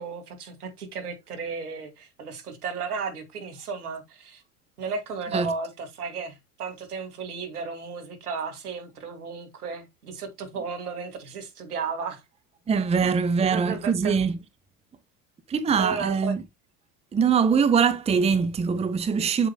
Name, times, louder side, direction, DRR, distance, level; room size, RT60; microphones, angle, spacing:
voice 1, 0.0-4.4 4.8-12.2 13.0-13.1 13.5-14.2 15.8-16.3, right 5 dB, 75° right, 2.5 m, -34 dB
voice 2, 12.7-14.4 15.5-16.4 17.1-19.5, right 6 dB, 15° right, 0.8 m, -23 dB
8.0 x 7.8 x 2.2 m
figure-of-eight pair, 75°, 46 cm